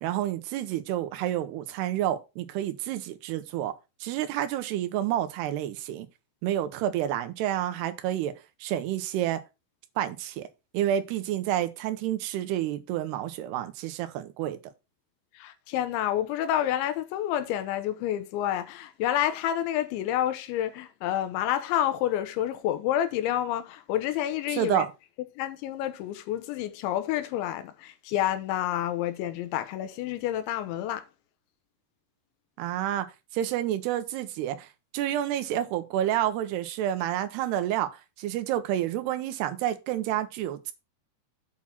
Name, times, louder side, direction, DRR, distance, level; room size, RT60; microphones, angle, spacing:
voice 1, 0.0-3.7 4.0-6.1 6.4-9.4 10.0-10.5 10.7-14.7 24.5-24.9 32.6-33.1 33.3-34.7 34.9-37.9 38.2-40.7, right 12 dB, 75° right, 2.7 m, -29 dB
voice 2, 15.3-24.8 25.4-31.1, left 12 dB, 85° left, 3.2 m, -29 dB
8.6 x 4.1 x 5.8 m
omnidirectional pair, 5.3 m